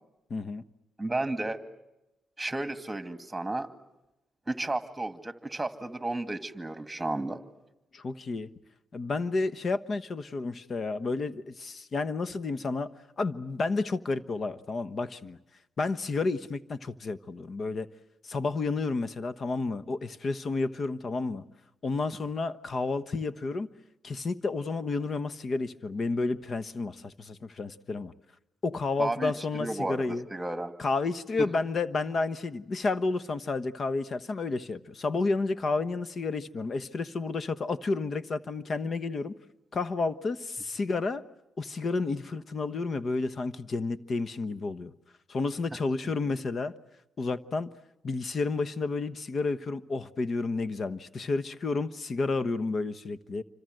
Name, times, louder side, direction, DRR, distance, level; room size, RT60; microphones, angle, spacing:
voice 1, 0.3-0.6 7.9-8.5 8.9-12.9 13.2-15.4 15.8-17.9 18.2-21.4 21.8-23.7 24.0-28.1 28.6-30.2 30.8-39.3 39.7-41.2 41.6-44.9 45.3-46.7 47.2-47.7 48.0-53.4, left 3 dB, 45° left, 1.2 m, -31 dB
voice 2, 1.0-1.6 2.4-3.7 4.5-7.4 29.0-30.7 31.4-31.5, right 2 dB, 15° right, 2.3 m, -33 dB
28.0 x 25.5 x 7.9 m
cardioid pair, 75°, 0 cm